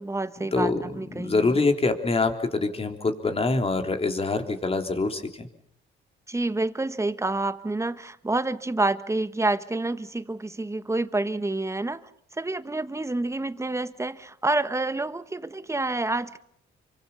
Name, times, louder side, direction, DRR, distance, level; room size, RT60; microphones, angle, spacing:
voice 1, 0.0-1.6 6.3-12.0 12.3-16.4, right 2 dB, 15° right, 1.3 m, -28 dB
voice 2, 0.5-0.8 1.1-5.5, left 3 dB, 30° left, 3.6 m, -25 dB
27.5 x 24.5 x 5.7 m
cardioid pair, 90°, 20 cm